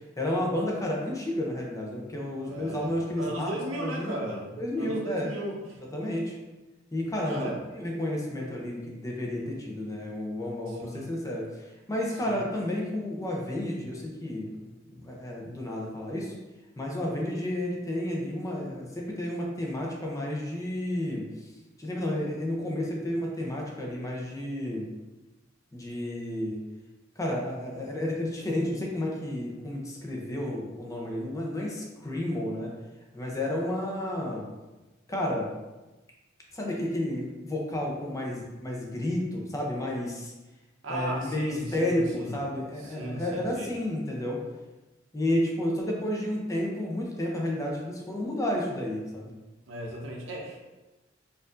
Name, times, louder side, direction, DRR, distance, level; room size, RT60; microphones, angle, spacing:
voice 1, 0.2-5.3 5.9-6.4 6.9-14.5 14.9-16.3 16.8-21.5 21.8-24.9 25.7-26.6 27.2-32.7 33.1-34.5 35.1-35.5 36.5-40.3 40.9-44.4 45.1-49.3, left 1 dB, 15° left, -2 dB, 0.6 m, -31 dB
voice 2, 2.5-5.6 7.3-7.6 10.7-11.0 12.2-12.4 40.8-42.4 42.8-43.7 49.7-50.6, right 1 dB, 85° right, -1 dB, 0.7 m, -36 dB
4.4 x 2.6 x 2.4 m, 1.1 s
head